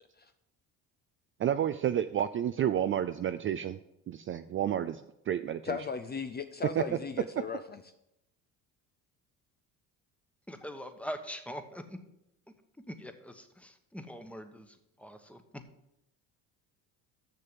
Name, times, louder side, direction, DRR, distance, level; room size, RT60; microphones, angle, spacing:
voice 1, 1.4-3.8 4.1-5.6 6.8-6.9, right 10 dB, 35° right, 11 dB, 0.4 m, -30 dB
voice 2, 5.6-7.8, left 5 dB, 25° left, 9 dB, 0.5 m, -37 dB
voice 3, 10.5-12.0 12.9-14.7 15.0-15.4, equal, 5° left, 8 dB, 1.1 m, -42 dB
6.8 x 6.6 x 7.6 m, 0.83 s
supercardioid pair, 85°, 38 cm